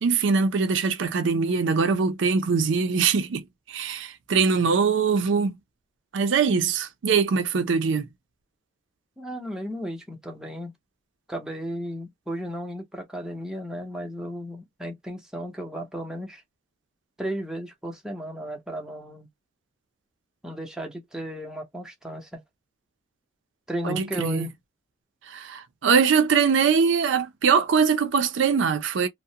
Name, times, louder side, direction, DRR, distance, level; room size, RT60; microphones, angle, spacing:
voice 1, 0.0-5.6 6.1-8.1 23.8-24.5 25.3-29.1, right 5 dB, 65° right, 0.4 m, -22 dB
voice 2, 9.2-10.7 11.3-16.4 17.2-19.3 20.4-22.4 23.7-24.5, equal, 5° right, 0.6 m, -34 dB
2.3 x 2.0 x 2.7 m
head